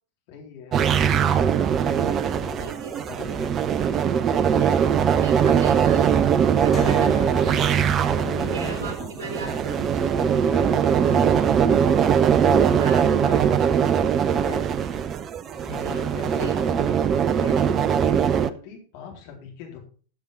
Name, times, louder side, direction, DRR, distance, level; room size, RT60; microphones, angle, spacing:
voice 1, 0.3-0.9 1.4-4.1 5.5-5.8 6.3-6.5 8.0-11.6 12.0-14.7 15.5-16.9 17.3-17.6 18.5-19.8, left 6 dB, 45° left, 1 dB, 3.7 m, -41 dB
sound 1, 0.7-18.5, right 8 dB, 30° right, 0.6 m, -21 dB
voice 2, 2.6-3.1 4.6-4.8 5.2-6.1 6.6-8.0 8.5-8.9 9.2-9.5 10.0-10.1 12.8-13.0 15.8-16.0 16.4-16.6, right 4 dB, 50° right, 3 dB, 3.9 m, -38 dB
sound 2, 6.7-11.5, left 5 dB, 20° left, 2.8 m, -38 dB
14.0 x 6.9 x 4.0 m, 0.42 s
figure-of-eight pair, 90°, 0 cm